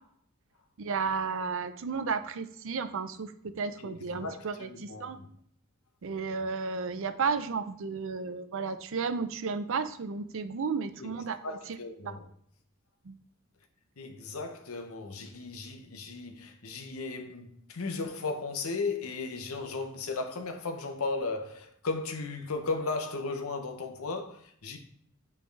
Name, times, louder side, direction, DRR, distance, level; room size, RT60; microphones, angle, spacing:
voice 1, 0.8-5.2 6.0-11.4 11.7-11.8 12.0-12.2 13.0-13.2, right 5 dB, 65° right, 0.5 m, -33 dB
voice 2, 3.8-5.3 11.0-11.1 11.4-12.3 14.0-24.8, left 3 dB, 80° left, 0.9 m, -36 dB
8.6 x 3.4 x 3.4 m
head